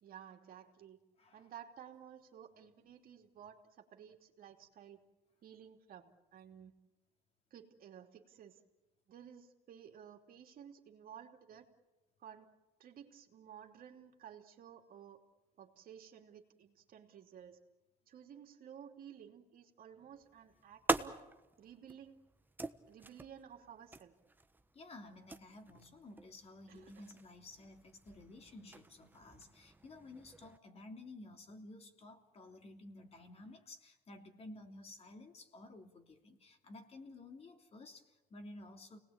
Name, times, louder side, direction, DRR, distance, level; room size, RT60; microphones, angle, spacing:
voice 1, 0.0-1.0 1.3-5.0 5.4-6.7 7.5-8.6 9.1-11.7 12.2-12.5 12.8-15.2 15.6-17.6 18.1-21.2 21.6-22.2 22.9-24.1 26.7-27.1, right 9 dB, 60° right, 3 dB, 2.9 m, -54 dB
sound 1, 20.1-30.6, right 2 dB, 10° right, 1.1 m, -44 dB
voice 2, 24.7-39.0, left 2 dB, 35° left, 4 dB, 3.2 m, -53 dB
29.5 x 19.5 x 8.9 m, 1.1 s
cardioid pair, 110°, 17 cm